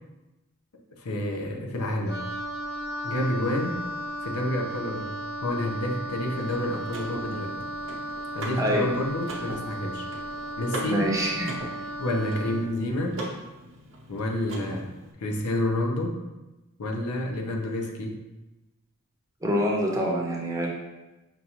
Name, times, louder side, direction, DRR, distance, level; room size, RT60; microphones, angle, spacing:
voice 1, 0.9-2.2 3.0-3.8 4.2-5.1 5.4-7.5 8.3-10.1 10.6-11.1 12.0-13.2 14.1-16.2 16.8-18.2, left 1 dB, 90° left, 2 dB, 0.6 m, -29 dB
Wind instrument woodwind instrument, 2.1-12.7, right 1 dB, 50° left, 0.5 m, -35 dB
Car / Mechanisms, 6.2-15.1, right 1 dB, 65° right, 0.7 m, -41 dB
voice 2, 10.9-11.5 19.4-20.7, equal, 15° right, -2 dB, 0.6 m, -25 dB
5.4 x 2.4 x 2.8 m, 1.0 s
head